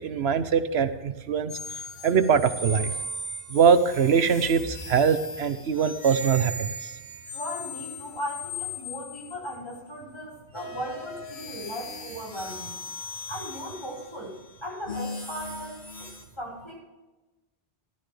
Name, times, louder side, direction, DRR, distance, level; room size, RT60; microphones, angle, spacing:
voice 1, 0.0-1.6 2.0-2.9 3.5-6.9, right 6 dB, 85° right, 11 dB, 1.1 m, -22 dB
sound 1, 1.5-9.8 10.5-16.2, left 2 dB, 90° left, 2.5 m, -38 dB
voice 2, 7.3-12.8 13.3-16.1 16.4-16.8, equal, 25° left, -3 dB, 4.9 m, -37 dB
14.0 x 12.5 x 3.4 m, 1.1 s
omnidirectional pair, 1.1 m